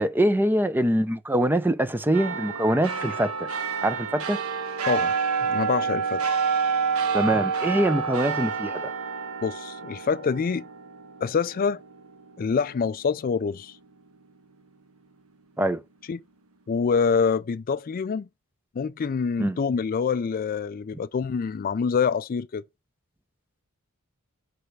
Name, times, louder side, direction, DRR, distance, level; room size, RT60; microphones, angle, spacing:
voice 1, 0.0-3.5 3.8-4.4 7.1-8.8 15.6-15.8 19.4-19.6, right 1 dB, 10° right, 0.5 m, -24 dB
sound 1, 2.1-12.9 13.3-13.4, right 5 dB, 80° right, 1.2 m, -28 dB
voice 2, 5.4-6.2 9.4-10.6 11.2-11.8 12.4-13.8 16.1-16.2 16.7-18.3 18.8-22.6, left 5 dB, 40° left, 0.3 m, -26 dB
7.9 x 3.4 x 6.5 m
head